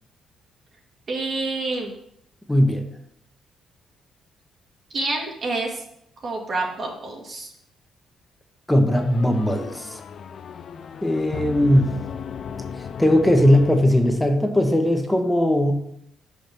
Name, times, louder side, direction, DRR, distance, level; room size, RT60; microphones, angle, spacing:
voice 1, 1.1-1.9 4.9-5.8 6.2-7.5, right 3 dB, 50° right, -1 dB, 1.7 m, -28 dB
voice 2, 2.5-2.9 8.7-10.0 11.0-12.0 13.0-15.7, left 1 dB, 5° left, 5 dB, 1.0 m, -19 dB
sound 1, 8.9-14.5, left 6 dB, 55° left, 0.4 m, -35 dB
5.6 x 5.4 x 5.9 m, 0.75 s
cardioid pair, 90°, 0 cm